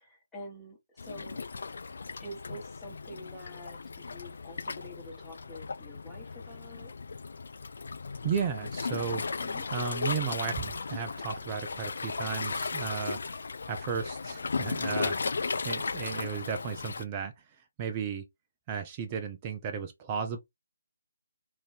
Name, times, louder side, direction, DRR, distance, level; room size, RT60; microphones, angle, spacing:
voice 1, 0.0-1.4 2.2-6.9 9.4-9.7, equal, 5° left, 1.2 m, -47 dB
Waves surf, 1.0-17.1, left 4 dB, 55° left, 0.3 m, -36 dB
voice 2, 8.2-9.4 9.7-15.3 15.6-17.3 17.8-18.2 18.7-20.4, right 7 dB, 20° right, 0.4 m, -34 dB
3.0 x 2.6 x 3.3 m
figure-of-eight pair, 145°, 0 cm